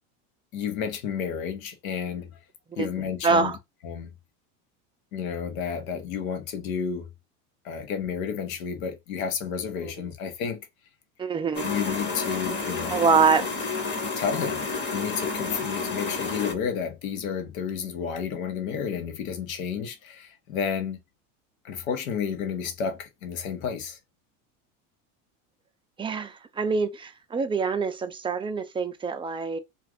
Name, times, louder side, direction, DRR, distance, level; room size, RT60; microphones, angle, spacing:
voice 1, 0.5-2.3 2.8-3.5 3.8-4.1 5.1-7.1 7.6-10.7 11.6-13.0 14.2-21.0 21.6-24.0, left 7 dB, 75° left, 1.0 m, -31 dB
voice 2, 3.2-3.6 9.8-9.9 11.2-11.7 12.9-13.5 26.0-29.6, right 5 dB, 15° right, 0.5 m, -25 dB
sound 1, 11.5-16.5, left 4 dB, 25° left, 1.0 m, -30 dB
2.5 x 2.4 x 3.4 m
hypercardioid pair, 95°, 42 cm